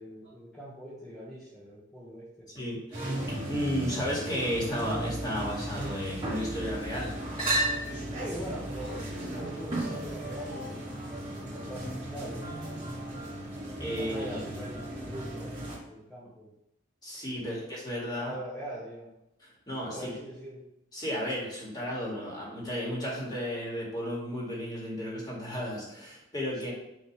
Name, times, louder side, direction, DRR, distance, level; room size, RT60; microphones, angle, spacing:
voice 1, 0.0-2.5 8.1-11.0 11.2-13.0 14.0-15.5 15.9-16.5 17.3-17.6 18.2-19.1 19.9-20.7 26.6-26.7, equal, ahead, -9 dB, 1.4 m, -42 dB
voice 2, 2.5-7.1 13.8-14.2 14.5-14.6 17.0-18.4 19.7-20.2 20.9-26.7, equal, 20° left, -5 dB, 2.1 m, -33 dB
sound 1, 2.9-15.8, right 1 dB, 25° right, 2.5 m, -35 dB
7.2 x 3.3 x 4.7 m, 0.85 s
head